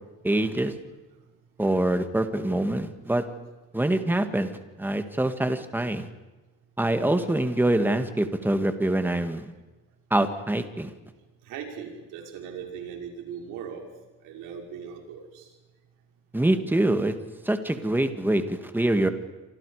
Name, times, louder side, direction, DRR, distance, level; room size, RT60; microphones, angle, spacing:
voice 1, 0.2-0.7 1.6-3.2 3.7-4.5 4.8-6.1 6.8-9.5 10.1-10.9 16.3-17.1 17.4-19.1, right 1 dB, 5° right, 8 dB, 2.0 m, -25 dB
voice 2, 11.4-13.9 14.2-15.5, right 7 dB, 90° right, 1 dB, 6.0 m, -39 dB
28.0 x 26.0 x 5.1 m, 1.2 s
cardioid pair, 130°, 31 cm